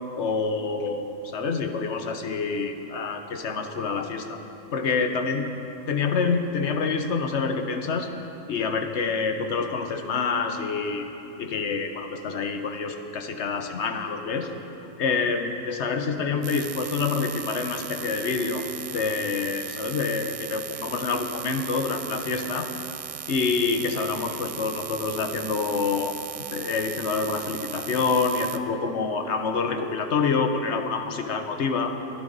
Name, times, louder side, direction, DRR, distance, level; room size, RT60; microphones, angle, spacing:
voice 1, 0.2-4.4 4.7-5.5 5.9-8.1 8.5-11.1 11.4-14.5 15.0-18.6 18.9-22.7 23.3-26.1 26.5-31.9, left 4 dB, 65° left, 6 dB, 1.2 m, -27 dB
sound 1, 16.4-28.6, right 6 dB, 60° right, 0.3 m, -37 dB
22.0 x 11.0 x 4.0 m, 3.0 s
omnidirectional pair, 1.3 m